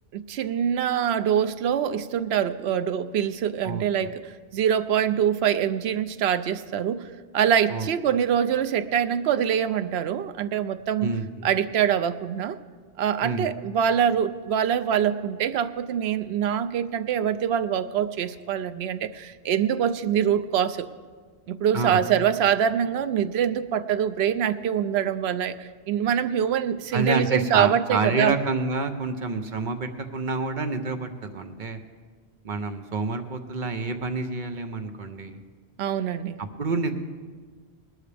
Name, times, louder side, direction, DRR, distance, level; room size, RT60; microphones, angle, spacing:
voice 1, 0.1-11.2 11.4-12.6 13.0-20.9 21.5-28.3 35.8-36.4, right 9 dB, 80° right, 11 dB, 0.8 m, -24 dB
voice 2, 3.6-4.1 7.7-7.9 11.0-11.5 13.2-13.5 21.7-22.0 26.9-31.8 32.4-35.4 36.4-36.9, right 3 dB, 50° right, 7 dB, 0.9 m, -28 dB
19.5 x 12.0 x 3.4 m, 1.5 s
omnidirectional pair, 1.1 m